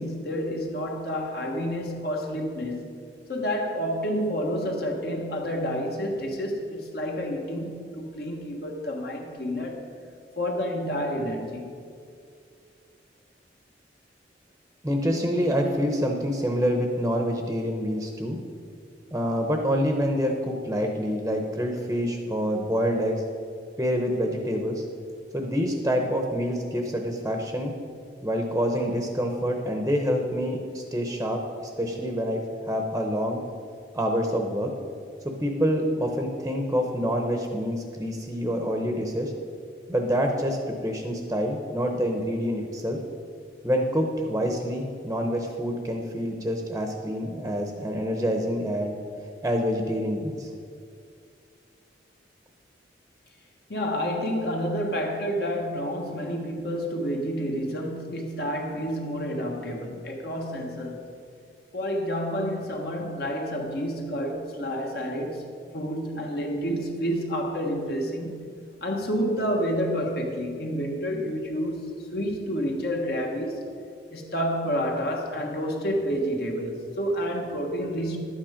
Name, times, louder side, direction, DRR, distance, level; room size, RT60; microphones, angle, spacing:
voice 1, 0.0-2.9 3.3-9.8 10.4-11.7 53.7-61.1 61.7-68.5 68.8-73.6 74.1-78.2, equal, 55° left, 1 dB, 1.4 m, -29 dB
voice 2, 14.8-18.4 19.1-23.2 23.8-24.8 25.3-27.7 28.2-33.5 33.9-34.7 35.2-39.3 39.9-43.0 43.6-49.0 49.4-50.5, equal, 10° right, 3 dB, 0.8 m, -27 dB
11.5 x 8.9 x 5.1 m, 2.3 s
head